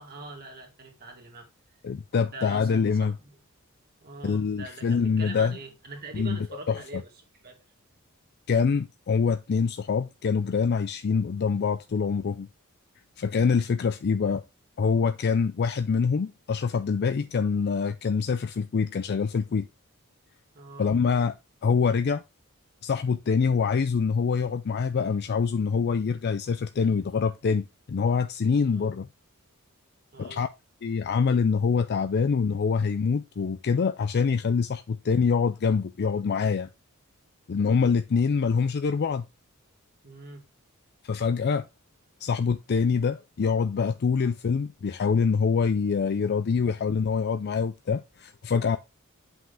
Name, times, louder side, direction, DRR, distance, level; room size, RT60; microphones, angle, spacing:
voice 1, 0.0-1.5 2.2-3.4 4.0-7.1 7.4-7.6 20.5-20.9 28.6-28.9 30.1-30.5 40.0-40.5, right 2 dB, 45° right, 2.3 m, -43 dB
voice 2, 1.8-3.1 4.2-5.5 6.1-6.4 6.7-7.0 8.5-12.5 13.2-14.4 14.8-19.7 20.8-21.3 21.6-22.2 22.8-29.1 30.2-30.5 30.8-36.7 37.5-39.2 41.0-41.6 42.2-48.8, left 5 dB, 50° left, 0.4 m, -25 dB
7.6 x 5.6 x 3.5 m
head